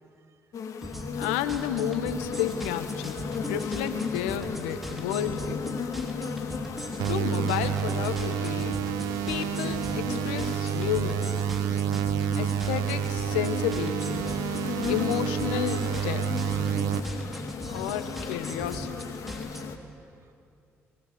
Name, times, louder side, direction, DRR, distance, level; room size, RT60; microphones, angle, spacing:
sound 1, 0.5-19.8, left 6 dB, 60° left, 2.2 m, -37 dB
sound 2, 0.8-19.6, equal, ahead, 5.1 m, -38 dB
voice 1, 1.1-5.8 7.0-8.8 9.3-11.3 12.3-14.3 14.9-16.3 17.7-18.9, left 10 dB, 85° left, 10 dB, 1.4 m, -31 dB
voice 2, 6.4-6.9 19.6-20.3, right 6 dB, 50° right, 5 dB, 2.9 m, -70 dB
sound 3, 7.0-17.0, right 10 dB, 80° right, 1.0 m, -29 dB
23.5 x 22.0 x 9.6 m, 2.6 s
hypercardioid pair, 50°, 6 cm